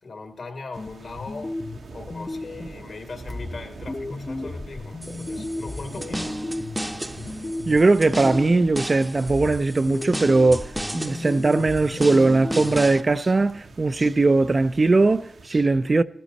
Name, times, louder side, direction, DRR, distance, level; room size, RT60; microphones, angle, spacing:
voice 1, 0.0-1.6 1.9-6.4, left 3 dB, 70° left, 2.3 m, -39 dB
sound 1, 0.7-15.5, right 3 dB, 80° right, 1.2 m, -45 dB
sound 2, 0.8-2.9 3.3-8.9 9.3-12.8, left 2 dB, 30° left, 0.8 m, -34 dB
sound 3, 5.0-13.0, right 1 dB, 10° right, 0.8 m, -34 dB
voice 2, 7.7-16.0, right 3 dB, 40° right, 0.5 m, -20 dB
15.5 x 13.0 x 4.1 m
cardioid pair, 70°, 0 cm